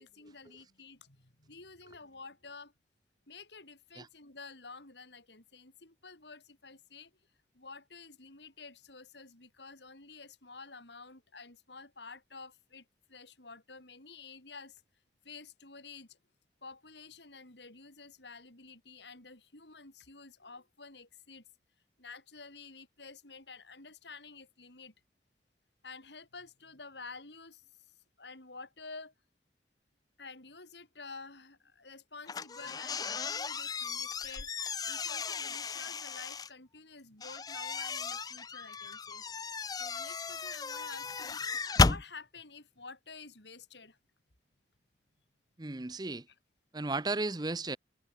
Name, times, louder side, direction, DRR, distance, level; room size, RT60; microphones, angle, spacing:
voice 1, 0.0-2.7 3.3-7.1 7.5-14.8 15.2-16.2 16.6-21.4 22.0-24.9 25.8-27.9 28.2-29.1 30.2-39.2 39.7-44.0, left 4 dB, 75° left, 4.8 m, -50 dB
sound 1, 32.3-36.5 37.2-42.0, left 4 dB, 20° left, 0.4 m, -34 dB
voice 2, 45.6-46.3 46.7-47.8, right 3 dB, 20° right, 0.7 m, -34 dB
head